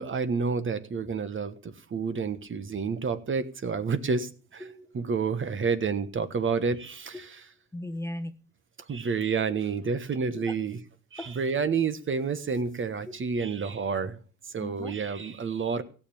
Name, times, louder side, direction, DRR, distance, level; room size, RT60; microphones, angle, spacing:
voice 1, 0.0-4.6 4.9-7.3 8.9-10.8 11.1-14.2 14.5-15.8, right 5 dB, 40° right, 1.4 m, -29 dB
voice 2, 4.6-5.0 7.1-7.3 7.7-8.4 10.3-10.5 11.2-11.4 14.6-14.9, left 1 dB, 10° left, 1.1 m, -38 dB
16.5 x 7.2 x 7.1 m
cardioid pair, 90°, 30 cm